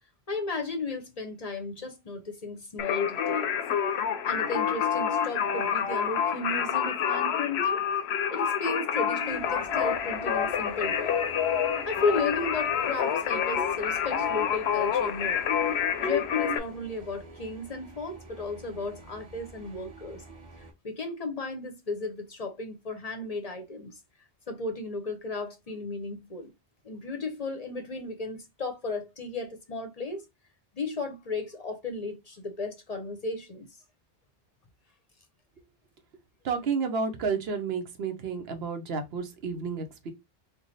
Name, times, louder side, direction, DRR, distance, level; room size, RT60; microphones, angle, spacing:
voice 1, 0.3-3.6 4.2-7.8 8.3-11.2 11.8-15.5 16.0-20.2 20.8-24.0 24.5-26.5 26.8-30.2 30.7-33.7, left 3 dB, 45° left, 0.6 m, -34 dB
Singing, 2.8-16.6, left 8 dB, 90° left, 0.8 m, -28 dB
sound 1, 9.2-20.7, right 2 dB, 40° right, 1.2 m, -49 dB
voice 2, 36.4-40.1, right 5 dB, 75° right, 0.9 m, -31 dB
3.3 x 2.3 x 3.9 m
omnidirectional pair, 1.0 m